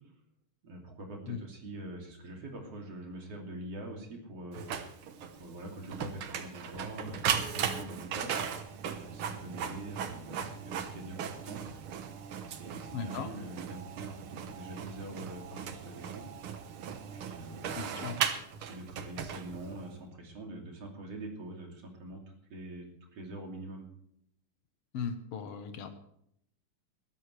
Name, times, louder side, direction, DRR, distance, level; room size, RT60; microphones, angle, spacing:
voice 1, 0.6-8.4 8.9-11.6 12.4-16.3 17.0-18.2 18.6-22.9 23.1-23.9, right 1 dB, 45° right, 1 dB, 3.6 m, -44 dB
Printer, 4.5-19.9, right 7 dB, 70° right, 1.3 m, -37 dB
voice 2, 12.9-13.3 17.7-18.2 24.9-25.9, left 6 dB, 60° left, 8 dB, 1.7 m, -37 dB
20.5 x 13.0 x 3.3 m, 0.72 s
omnidirectional pair, 4.0 m